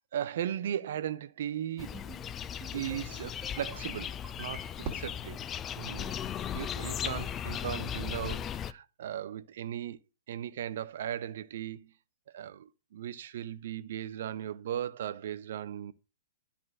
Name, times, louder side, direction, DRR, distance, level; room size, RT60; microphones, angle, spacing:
voice 1, 0.1-2.0 2.7-5.4 5.8-6.2 6.5-10.0 10.3-11.9 12.3-15.9, right 10 dB, 60° right, 0.6 m, -37 dB
sound 1, 1.8-8.7, left 9 dB, 20° left, 0.4 m, -37 dB
sound 2, 1.8-2.2 2.6-3.1 3.4-3.9 4.2-5.0, right 4 dB, 15° right, 1.0 m, -51 dB
Fireworks, 4.8-7.0, right 7 dB, 35° right, 2.5 m, -45 dB
11.0 x 4.3 x 6.1 m
figure-of-eight pair, 115°, 0 cm